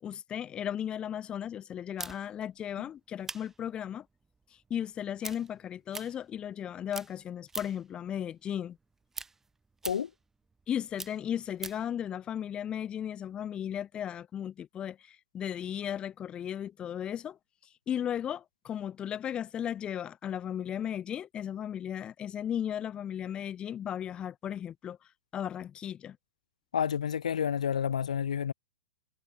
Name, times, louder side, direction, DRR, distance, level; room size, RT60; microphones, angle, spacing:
voice 1, 0.0-4.0 4.7-8.8 10.7-17.4 17.9-25.0 25.3-26.2, left 9 dB, 25° left, 5.5 m, -35 dB
sound 1, 2.0-6.6 6.9-7.9 8.3-11.9, right 3 dB, 10° right, 5.2 m, -43 dB
voice 2, 26.7-28.5, left 8 dB, 65° left, 0.6 m, -29 dB
figure-of-eight pair, 100°, 4 cm